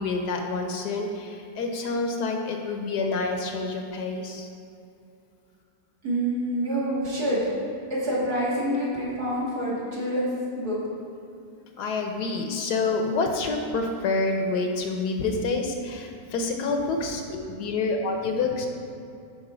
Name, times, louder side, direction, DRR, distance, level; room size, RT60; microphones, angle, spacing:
voice 1, 0.0-4.5 11.8-17.2 17.6-18.7, left 3 dB, 70° left, 3 dB, 1.3 m, -27 dB
voice 2, 6.0-7.5 7.9-10.3 10.6-10.8 17.0-17.4 18.2-18.3, right 1 dB, 60° right, -8 dB, 2.8 m, -27 dB
10.5 x 4.7 x 5.0 m, 2.5 s
omnidirectional pair, 1.9 m